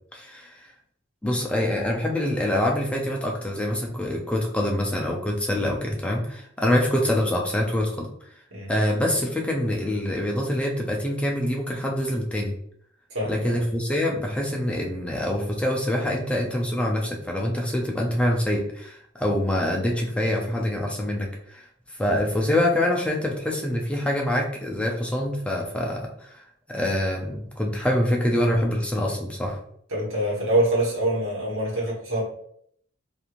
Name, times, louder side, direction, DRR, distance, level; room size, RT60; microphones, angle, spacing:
voice 1, 0.1-0.7 1.2-8.1 8.7-12.6 13.2-26.4 26.7-29.6, left 1 dB, 5° left, -1 dB, 0.4 m, -25 dB
voice 2, 13.1-13.6 29.9-32.2, right 1 dB, 85° right, -3 dB, 1.2 m, -25 dB
3.0 x 2.6 x 2.4 m, 0.66 s
head